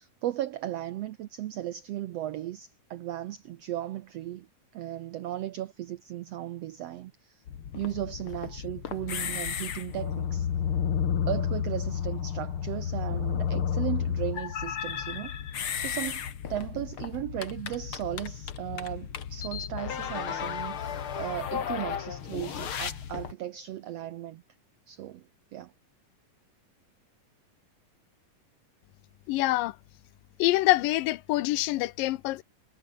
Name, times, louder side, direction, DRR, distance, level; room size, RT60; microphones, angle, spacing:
voice 1, 0.0-4.5 4.7-7.4 7.7-10.5 11.3-15.4 15.7-16.2 16.5-24.4 24.9-25.7, right 13 dB, 80° right, 1.4 m, -36 dB
sound 1, 7.5-23.3, left 8 dB, 45° left, 2.1 m, -32 dB
voice 2, 29.3-29.8 30.4-32.4, left 17 dB, 85° left, 2.5 m, -25 dB
omnidirectional pair, 3.8 m